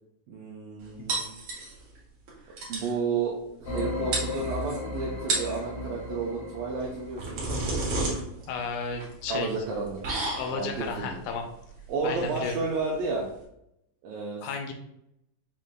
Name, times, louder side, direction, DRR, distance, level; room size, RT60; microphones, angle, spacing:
voice 1, 0.3-1.3 2.7-3.3 3.6-7.6 9.3-10.0 10.5-11.2 11.9-13.2 14.0-14.5, right 4 dB, 80° right, -3 dB, 1.6 m, -31 dB
sound 1, 1.1-2.0 2.3-2.4 2.6-2.9 3.8-3.9 4.1-4.8 5.2-5.6 6.8-13.4, right 2 dB, 60° right, 1.4 m, -32 dB
sound 2, 3.6-8.0, left 2 dB, 55° left, 1.3 m, -36 dB
voice 2, 8.5-9.5 10.4-11.4 12.0-12.6 14.4-14.7, left 5 dB, 80° left, 4 dB, 1.9 m, -33 dB
6.5 x 3.7 x 2.2 m, 0.79 s
omnidirectional pair, 3.9 m